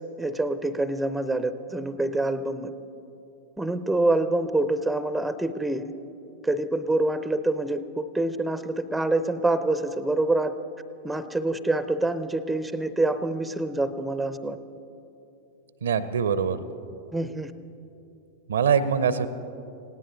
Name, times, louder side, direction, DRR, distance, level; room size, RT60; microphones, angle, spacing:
voice 1, 0.0-2.7 3.6-5.8 6.4-10.5 11.0-14.6 17.1-17.5, right 2 dB, 5° right, 13 dB, 0.6 m, -26 dB
voice 2, 15.8-16.6 18.5-19.3, right 7 dB, 65° right, 14 dB, 0.7 m, -23 dB
19.0 x 17.5 x 4.0 m, 2.7 s
figure-of-eight pair, 90°, 0 cm